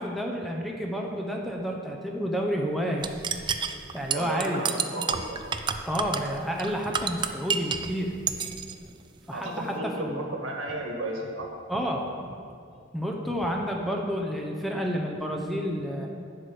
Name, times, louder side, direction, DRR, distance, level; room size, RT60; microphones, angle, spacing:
voice 1, 0.0-3.1 3.9-4.6 5.8-8.1 9.3-10.3 11.7-12.1 12.9-16.1, equal, ahead, 0 dB, 0.7 m, -30 dB
sound 1, 3.0-7.9 8.3-8.7, right 6 dB, 20° right, 0.3 m, -29 dB
voice 2, 4.1-5.4 9.3-11.5, right 1 dB, 80° right, 0 dB, 1.8 m, -33 dB
11.0 x 5.0 x 7.7 m, 2.3 s
head